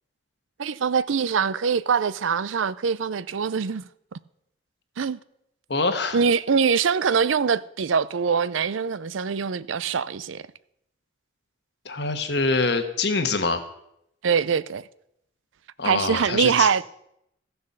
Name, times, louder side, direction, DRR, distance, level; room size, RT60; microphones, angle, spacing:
voice 1, 0.6-3.9 5.0-5.2 6.1-10.4 14.2-14.8 15.8-16.8, right 6 dB, 90° right, 0.5 m, -23 dB
voice 2, 5.7-6.2 11.8-13.6 15.8-16.7, left 3 dB, 60° left, 1.3 m, -24 dB
15.0 x 6.9 x 6.7 m
head